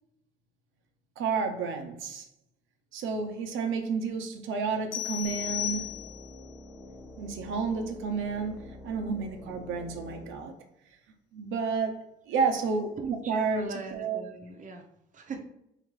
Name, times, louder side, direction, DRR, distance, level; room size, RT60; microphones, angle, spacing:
voice 1, 1.2-2.3 2.9-5.9 7.2-8.6 8.8-10.5 11.3-12.9 13.3-13.7, right 5 dB, 90° right, 4 dB, 0.6 m, -30 dB
sound 1, 4.9-6.4, left 14 dB, 80° left, 0.5 m, -34 dB
sound 2, 5.2-10.3, left 1 dB, ahead, 0.7 m, -47 dB
voice 2, 13.0-14.8 15.1-15.4, right 6 dB, 40° right, 4 dB, 0.7 m, -37 dB
3.7 x 3.6 x 3.1 m, 0.81 s
cardioid pair, 90°, 20 cm